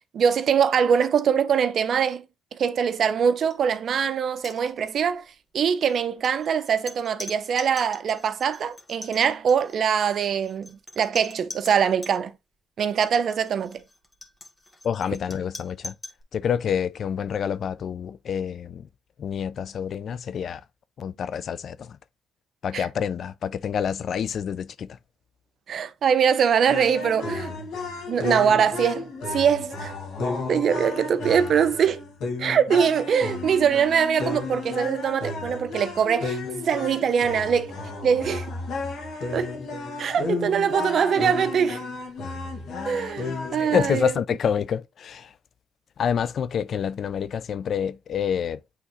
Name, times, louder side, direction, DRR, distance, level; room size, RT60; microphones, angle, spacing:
voice 1, 0.1-2.2 2.5-5.2 5.5-12.3 12.8-13.8 22.7-22.9 25.7-27.5 28.1-29.9 30.5-32.0 32.4-36.4 36.6-37.7 38.0-38.5 39.3-39.5 40.0-41.8 42.9-44.1, right 7 dB, 60° right, 0.7 m, -23 dB
sound 1, 3.4-3.6 3.9-4.0 4.4-5.1 5.9-12.2 12.9-16.2, left 2 dB, 20° left, 1.7 m, -43 dB
voice 2, 14.8-16.0 16.3-18.9 19.2-20.6 21.0-22.0 22.6-25.0 43.6-45.3 46.0-48.6, left 7 dB, 60° left, 0.4 m, -27 dB
sound 2, 26.7-43.9, left 3 dB, 80° left, 2.1 m, -33 dB
8.4 x 3.6 x 3.1 m
cardioid pair, 90°, 0 cm